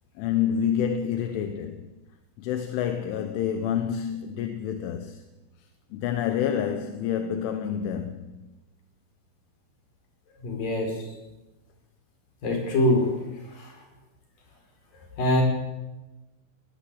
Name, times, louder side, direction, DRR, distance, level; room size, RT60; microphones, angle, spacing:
voice 1, 0.2-1.9 2.4-5.2 5.9-8.5, left 9 dB, 80° left, 3.6 m, -28 dB
voice 2, 10.4-10.9 12.4-13.1 13.5-13.7 15.2-15.4, left 1 dB, 45° left, 6.7 m, -23 dB
19.5 x 18.5 x 8.6 m
omnidirectional pair, 5.6 m